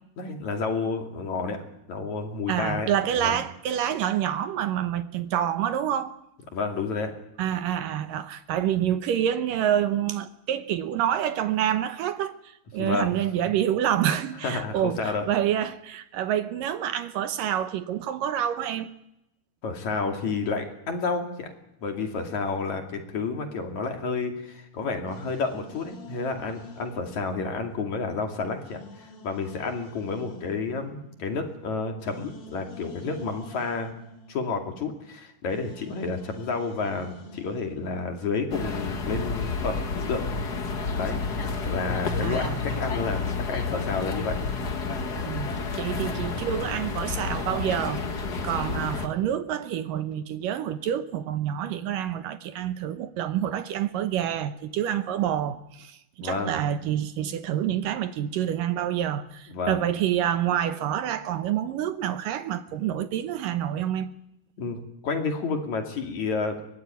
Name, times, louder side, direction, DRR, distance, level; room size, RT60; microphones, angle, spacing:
voice 1, 0.2-1.6 1.9-2.9 3.2-3.4 6.5-7.1 12.8-13.1 14.4-15.3 19.6-21.5 21.8-33.9 34.3-40.5 41.0-41.2 41.6-44.4 45.9-46.1 56.2-56.5 59.5-59.8 64.6-66.6, left 4 dB, 45° left, 3.5 m, -30 dB
voice 2, 2.5-6.1 7.4-12.4 12.7-18.9 42.2-42.6 45.2-48.0 48.4-64.1, right 10 dB, 70° right, 2.2 m, -27 dB
sound 1, 25.1-28.1 28.5-35.1 35.5-38.2, left 2 dB, 30° left, 2.5 m, -48 dB
sound 2, 38.5-49.1, left 4 dB, 85° left, 0.8 m, -30 dB
23.0 x 19.0 x 9.2 m
omnidirectional pair, 4.9 m